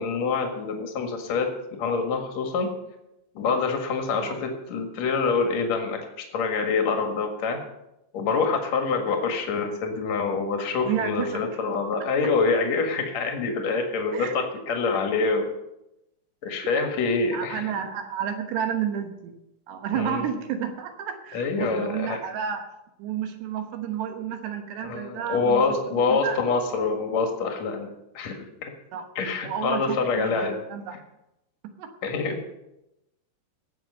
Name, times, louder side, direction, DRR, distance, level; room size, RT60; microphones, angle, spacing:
voice 1, 0.0-1.5 1.8-2.7 3.3-7.6 8.1-15.5 16.4-17.7 19.9-20.3 21.3-22.2 24.8-27.9 28.1-28.7 29.2-30.5 32.0-32.4, left 4 dB, 55° left, 3 dB, 2.1 m, -26 dB
voice 2, 10.9-11.4 14.1-14.4 17.3-19.3 19.7-22.6 23.0-25.6 25.9-26.4 26.7-26.9 28.9-29.1 29.4-31.0 31.8-31.9, right 8 dB, 70° right, 6 dB, 2.8 m, -31 dB
18.5 x 7.9 x 5.5 m, 0.89 s
omnidirectional pair, 5.7 m